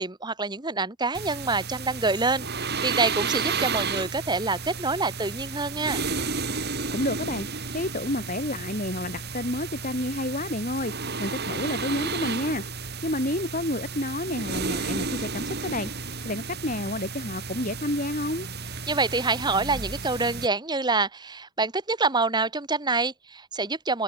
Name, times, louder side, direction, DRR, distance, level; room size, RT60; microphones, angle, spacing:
voice 1, 0.0-6.0 18.9-24.0, right 3 dB, 20° right, 1.5 m, -26 dB
sound 1, 1.1-20.5, right 4 dB, 50° right, 5.2 m, -32 dB
voice 2, 6.9-10.9 11.2-12.6 13.0-15.9 16.2-18.5, left 1 dB, 35° left, 4.0 m, -30 dB
open air
head